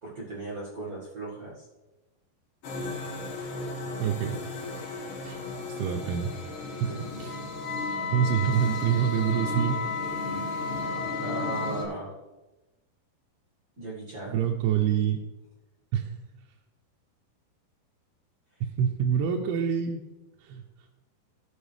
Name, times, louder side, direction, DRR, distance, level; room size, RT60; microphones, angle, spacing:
voice 1, 0.0-1.6 6.8-7.1 11.2-12.1 13.8-14.4, right 2 dB, 40° right, -6 dB, 1.2 m, -37 dB
sound 1, 2.6-11.9, left 2 dB, 65° left, 2.9 m, -36 dB
voice 2, 4.0-4.4 5.2-5.4 5.8-6.3 6.8-6.9 7.2-7.4 8.1-10.1 14.3-15.2 15.9-16.1 18.6-20.0 20.4-20.6, right 8 dB, 80° right, 1 dB, 2.5 m, -26 dB
Wind instrument woodwind instrument, 7.2-11.8, left 5 dB, 85° left, 3.5 m, -34 dB
16.5 x 5.5 x 3.4 m, 1.1 s
omnidirectional pair, 4.8 m